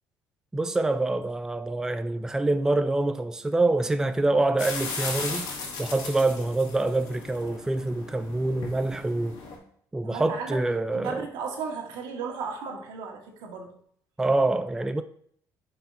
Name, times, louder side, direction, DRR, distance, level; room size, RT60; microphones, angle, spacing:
voice 1, 0.5-5.5 5.8-9.4 9.9-11.3 14.2-15.0, right 2 dB, 10° right, 0.3 m, -26 dB
sound 1, 4.6-9.6, left 4 dB, 85° left, 2.0 m, -36 dB
voice 2, 10.0-10.6 10.9-13.8, right 5 dB, 90° right, 1.5 m, -35 dB
9.1 x 4.8 x 2.6 m
cardioid pair, 120°, 7 cm